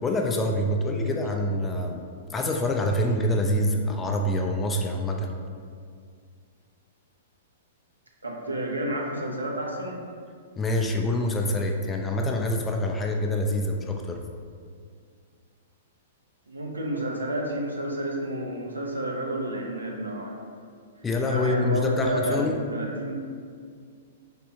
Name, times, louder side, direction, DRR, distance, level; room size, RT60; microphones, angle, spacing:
voice 1, 0.0-2.0 2.3-5.4 10.6-14.2 21.0-22.6, left 1 dB, 15° left, 2 dB, 0.4 m, -26 dB
voice 2, 8.2-10.0 16.5-20.4 21.3-23.2, right 1 dB, 85° right, -1 dB, 0.6 m, -30 dB
3.3 x 3.3 x 2.8 m, 2.1 s
figure-of-eight pair, 110°, 0 cm